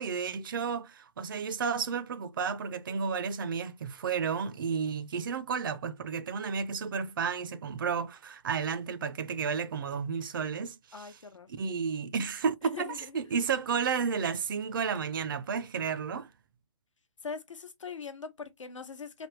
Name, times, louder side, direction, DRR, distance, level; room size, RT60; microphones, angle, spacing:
voice 1, 0.0-11.1 11.5-16.3, right 6 dB, 45° right, 0.4 m, -32 dB
voice 2, 10.9-11.5 12.7-13.3 17.2-19.3, left 5 dB, 80° left, 0.9 m, -42 dB
3.3 x 2.1 x 3.0 m
hypercardioid pair, 150°, 16 cm